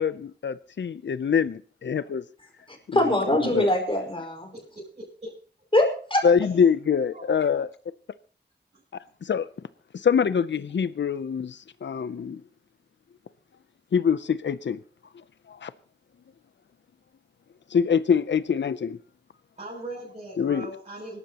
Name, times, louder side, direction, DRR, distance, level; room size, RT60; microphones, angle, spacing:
voice 1, 0.0-2.2 2.9-3.1 3.4-3.7 6.2-7.7 9.2-9.5 9.9-12.4 13.9-14.8 15.5-15.7 17.7-19.0 20.4-20.7, left 7 dB, 80° left, 15 dB, 0.6 m, -24 dB
voice 2, 2.9-4.5 5.7-6.2, left 1 dB, 30° left, 2 dB, 5.1 m, -23 dB
voice 3, 4.5-5.3 7.1-7.3 8.7-8.8 19.6-21.2, right 1 dB, 40° right, -8 dB, 7.2 m, -40 dB
25.0 x 12.5 x 2.9 m, 0.43 s
wide cardioid pair, 55°, 19 cm